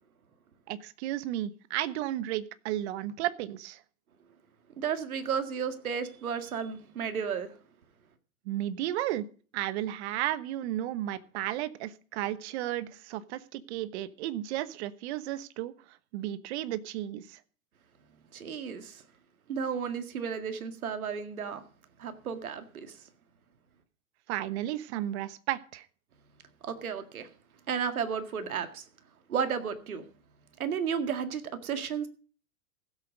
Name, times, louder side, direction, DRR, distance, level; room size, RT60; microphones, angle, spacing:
voice 1, 0.7-3.8 8.5-9.3 9.5-15.7 16.1-17.4 24.3-25.8, right 13 dB, 50° right, 15 dB, 1.2 m, -33 dB
voice 2, 4.8-7.5 18.3-19.0 19.5-21.6 22.0-23.0 26.6-27.3 27.7-28.9 29.3-30.0 30.6-32.1, right 7 dB, 85° right, 8 dB, 2.0 m, -33 dB
16.0 x 8.3 x 5.2 m, 0.40 s
hypercardioid pair, 115°, 42 cm